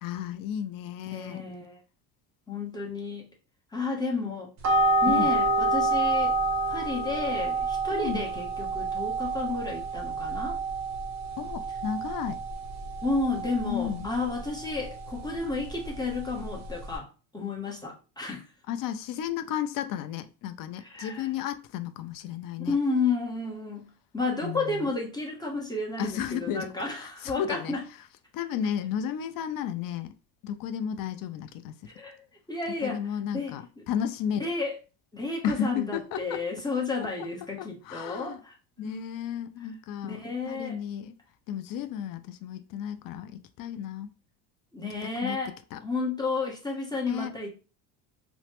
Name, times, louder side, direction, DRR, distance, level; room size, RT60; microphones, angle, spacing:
voice 1, 0.0-1.4 5.1-5.3 7.9-8.2 11.4-12.4 13.6-14.1 18.7-22.8 24.4-24.9 26.0-26.7 27.0-27.7 28.3-30.1 30.4-31.8 32.8-34.5 35.4-36.4 37.6-38.4 38.8-40.2 40.5-41.1 41.5-44.1 45.2-45.4 45.7-45.8 47.1-47.3, left 9 dB, 50° left, 0.5 m, -33 dB
voice 2, 1.1-1.8 2.5-3.3 3.7-4.5 5.0-6.4 6.7-10.6 13.0-17.1 17.3-18.5 20.8-21.3 22.6-27.8 31.9-33.1 33.3-33.8 34.4-34.8 35.1-39.0 40.0-40.8 44.7-47.5, left 3 dB, 10° left, 0.8 m, -32 dB
sound 1, 4.6-17.0, right 2 dB, 40° right, 0.7 m, -29 dB
3.1 x 2.0 x 2.9 m
supercardioid pair, 110°, 44 cm